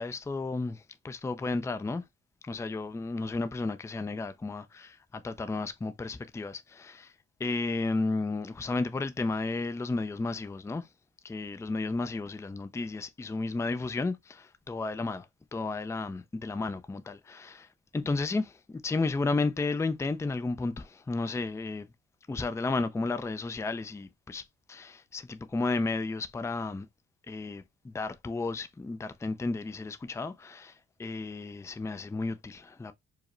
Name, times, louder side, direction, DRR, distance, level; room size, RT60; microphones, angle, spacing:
voice 1, 0.0-2.1 2.4-7.1 7.4-10.9 11.2-15.3 15.5-21.9 22.3-24.4 24.7-26.9 27.3-32.9, left 3 dB, 10° left, 0.4 m, -33 dB
4.8 x 2.1 x 3.0 m
cardioid pair, 90°, 30 cm